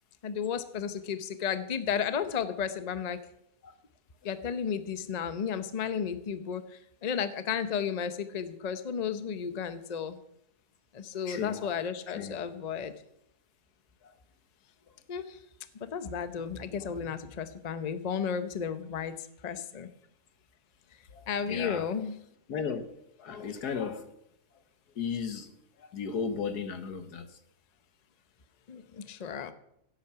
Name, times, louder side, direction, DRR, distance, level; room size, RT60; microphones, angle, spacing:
voice 1, 0.2-3.2 4.2-10.2 10.9-12.9 15.1-15.4 15.8-19.9 21.3-22.2 28.7-29.5, left 7 dB, 35° left, 11 dB, 0.7 m, -33 dB
voice 2, 11.3-11.7 12.1-12.4 14.0-14.2 21.1-21.9 22.5-22.9 23.2-24.1 25.0-25.5 25.8-27.4, left 6 dB, 90° left, 9 dB, 1.8 m, -35 dB
16.5 x 8.5 x 5.8 m, 0.76 s
omnidirectional pair, 1.6 m